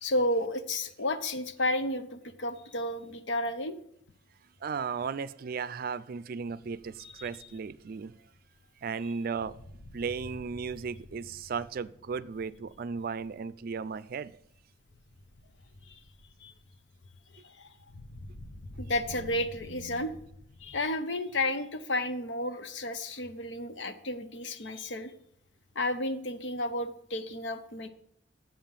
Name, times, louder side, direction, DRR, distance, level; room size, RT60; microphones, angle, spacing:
voice 1, 0.0-3.8 7.0-7.3 15.8-16.0 16.4-16.5 17.4-17.7 18.8-20.1 20.6-25.1 25.7-27.9, left 1 dB, 80° left, 10 dB, 0.8 m, -32 dB
voice 2, 4.6-8.1 8.8-9.6 9.9-14.3 19.1-20.1, right 5 dB, 55° right, 16 dB, 0.4 m, -36 dB
sound 1, 6.5-20.8, left 1 dB, 55° left, 0.9 m, -51 dB
7.4 x 5.5 x 7.4 m, 0.72 s
head